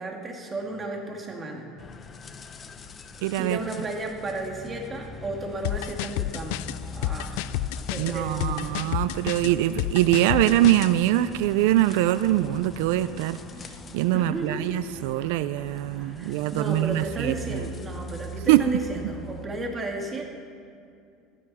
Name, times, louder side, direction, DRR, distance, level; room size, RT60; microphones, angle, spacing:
voice 1, 0.0-1.7 3.4-7.5 7.9-8.7 14.1-14.7 15.9-20.2, right 2 dB, 20° right, 1 dB, 2.1 m, -33 dB
sound 1, 0.5-19.5, right 2 dB, 5° left, 4.2 m, -47 dB
sound 2, 1.8-19.4, left 5 dB, 25° left, 0.8 m, -43 dB
voice 2, 3.2-3.6 8.0-13.4 13.9-17.3 18.5-18.6, right 14 dB, 80° right, 13 dB, 0.4 m, -23 dB
sound 3, 5.6-10.9, left 14 dB, 75° left, 0.4 m, -30 dB
16.0 x 13.5 x 4.2 m, 2.4 s
supercardioid pair, 140°, 0 cm